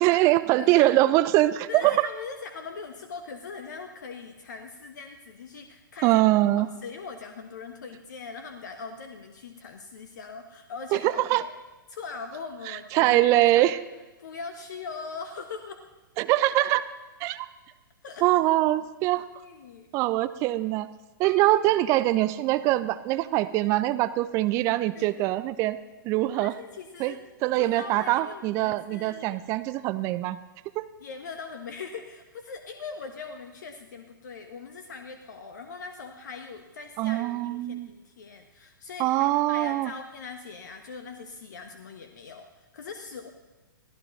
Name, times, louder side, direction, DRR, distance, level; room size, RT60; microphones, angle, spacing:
voice 1, 0.0-2.1 6.0-6.7 10.9-11.4 12.7-13.8 16.2-16.8 17.2-17.5 18.2-19.3 19.9-20.9 21.2-25.8 26.0-26.5 27.0-27.1 27.4-30.4 30.8-30.9 37.0-37.9 39.0-39.9, right 16 dB, 25° right, 14 dB, 0.6 m, -23 dB
voice 2, 0.6-0.9 1.7-6.2 6.6-11.5 11.9-13.7 14.2-15.8 18.0-18.4 19.1-19.9 24.9-25.4 26.3-27.2 27.4-29.4 31.0-43.3, left 5 dB, 55° left, 6 dB, 1.2 m, -41 dB
Piano, 21.2-23.3 23.5-23.6, equal, ahead, 1.6 m, -53 dB
23.5 x 15.5 x 3.1 m, 1.2 s
figure-of-eight pair, 115°, 12 cm